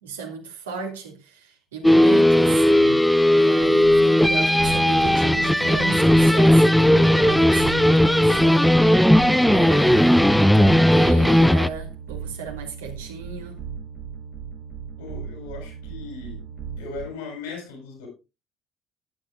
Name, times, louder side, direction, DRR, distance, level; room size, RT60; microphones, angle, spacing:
voice 1, 0.0-3.1 3.3-8.7 9.5-13.6, right 6 dB, 75° right, 2.2 m, -35 dB
sound 1, 1.8-11.7, left 1 dB, 5° left, 0.5 m, -16 dB
sound 2, 3.6-17.1, right 7 dB, 45° right, 2.2 m, -37 dB
voice 2, 15.0-16.4 16.8-18.1, left 4 dB, 75° left, 6.8 m, -37 dB
15.0 x 9.7 x 2.4 m
figure-of-eight pair, 55°, 0 cm